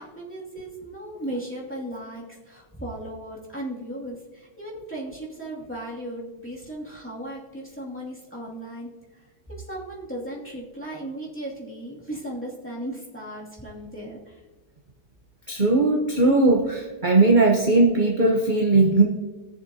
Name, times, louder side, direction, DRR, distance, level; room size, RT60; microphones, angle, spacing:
voice 1, 0.0-14.4, right 1 dB, 5° left, -6 dB, 2.4 m, -36 dB
voice 2, 15.5-19.0, right 2 dB, 35° right, -1 dB, 0.9 m, -19 dB
20.0 x 6.9 x 2.8 m, 1.3 s
omnidirectional pair, 1.9 m